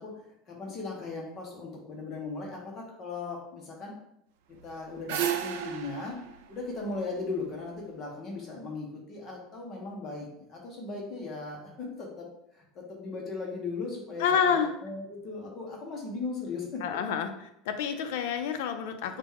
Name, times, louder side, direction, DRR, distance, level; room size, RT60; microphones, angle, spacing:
voice 1, 0.0-3.9 4.6-6.2 6.5-12.3 12.5-16.8, left 3 dB, 25° left, -1 dB, 0.7 m, -38 dB
sound 1, 4.6-7.7, right 9 dB, 80° right, 0.4 m, -34 dB
voice 2, 14.2-14.7 16.8-17.3 17.7-19.2, left 7 dB, 70° left, 7 dB, 0.5 m, -28 dB
4.8 x 2.1 x 3.5 m, 0.78 s
cardioid pair, 175°, 0 cm